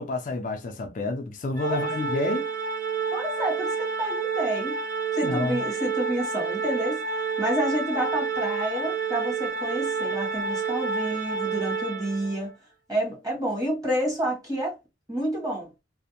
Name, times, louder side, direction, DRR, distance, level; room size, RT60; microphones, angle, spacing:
voice 1, 0.0-2.4 5.2-5.7, left 3 dB, 45° left, 0.4 m, -29 dB
Organ, 1.6-12.4, right 5 dB, 50° right, 0.6 m, -29 dB
voice 2, 3.1-4.8 5.1-7.0 7.4-12.5 12.9-14.8 15.1-15.7, right 1 dB, 20° right, 1.1 m, -29 dB
2.5 x 2.0 x 2.8 m
head